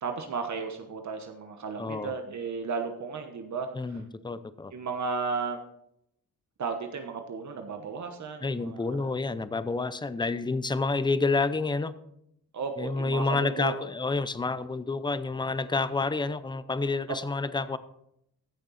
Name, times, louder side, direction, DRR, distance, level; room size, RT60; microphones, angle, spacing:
voice 1, 0.0-3.7 4.7-5.6 6.6-9.0 12.5-13.7, right 5 dB, 55° right, 5 dB, 1.2 m, -34 dB
voice 2, 1.8-2.2 3.7-4.7 8.4-11.9 12.8-17.8, left 3 dB, 15° left, 14 dB, 0.6 m, -29 dB
15.0 x 6.6 x 4.2 m, 0.76 s
cardioid pair, 105°, 34 cm